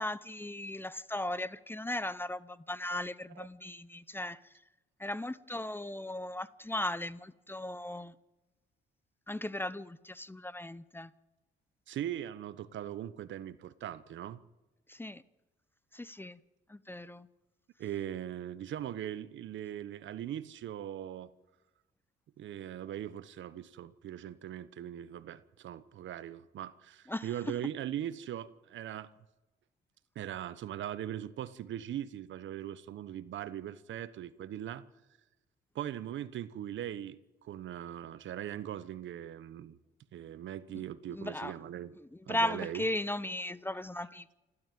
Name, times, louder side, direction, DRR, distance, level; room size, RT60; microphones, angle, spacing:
voice 1, 0.0-4.4 5.0-8.1 9.3-11.1 14.9-15.2 15.9-16.4 16.7-17.3 27.1-27.5 41.1-41.5 42.0-44.4, left 1 dB, 10° left, 0.8 m, -37 dB
voice 2, 11.9-14.4 17.8-21.3 22.4-29.1 30.1-34.8 35.7-39.8 40.1-41.9 42.3-42.8, right 11 dB, 70° right, 1.1 m, -40 dB
28.5 x 12.5 x 9.2 m
cardioid pair, 90°, 20 cm